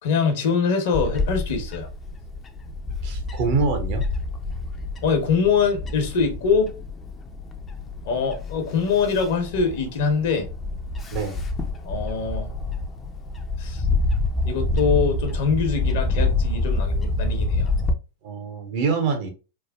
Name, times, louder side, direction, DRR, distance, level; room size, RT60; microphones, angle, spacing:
voice 1, 0.0-1.9 5.0-6.7 8.0-10.5 11.8-12.5 13.6-13.8 14.4-17.7, left 5 dB, 65° left, 0.9 m, -23 dB
Bird / Wind, 0.9-17.9, left 2 dB, 25° left, 0.4 m, -27 dB
voice 2, 3.0-4.1 11.1-11.4 18.2-19.3, right 4 dB, 55° right, 0.7 m, -25 dB
3.2 x 2.1 x 2.3 m
hypercardioid pair, 110°, 0 cm